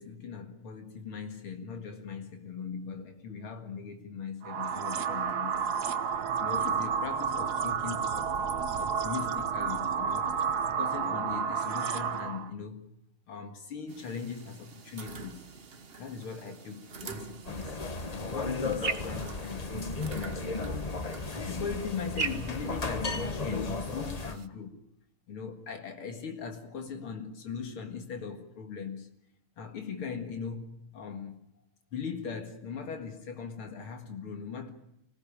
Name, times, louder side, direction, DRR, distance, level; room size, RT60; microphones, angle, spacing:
voice 1, 0.0-10.3 10.7-12.8 13.3-15.5 16.0-17.8 18.1-20.7 21.3-24.8 25.3-29.1 29.6-31.4 31.9-34.7, left 6 dB, 80° left, 2.8 m, -40 dB
sound 1, 4.4-12.5, right 6 dB, 55° right, 1.5 m, -31 dB
sound 2, 13.9-24.5, right 5 dB, 35° right, 1.0 m, -42 dB
sound 3, 17.5-24.4, left 3 dB, 35° left, 0.6 m, -34 dB
25.5 x 18.0 x 8.7 m
omnidirectional pair, 2.3 m